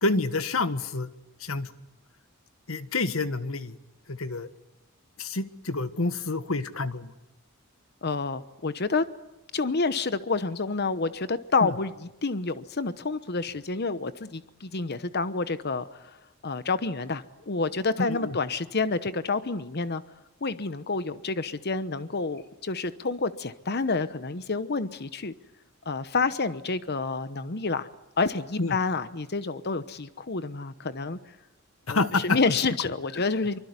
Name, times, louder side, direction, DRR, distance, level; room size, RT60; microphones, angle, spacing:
voice 1, 0.0-1.1 1.4-1.7 2.7-3.7 4.1-4.5 5.2-7.1 11.6-11.7 18.0-18.4 28.6-28.8 31.9-32.4, left 3 dB, 90° left, 11 dB, 1.6 m, -28 dB
voice 2, 8.0-9.0 9.5-16.2 16.4-20.0 20.4-25.3 25.9-27.9 28.2-31.2 31.9-33.6, left 4 dB, 50° left, 13 dB, 1.0 m, -29 dB
25.0 x 24.5 x 9.7 m, 0.91 s
head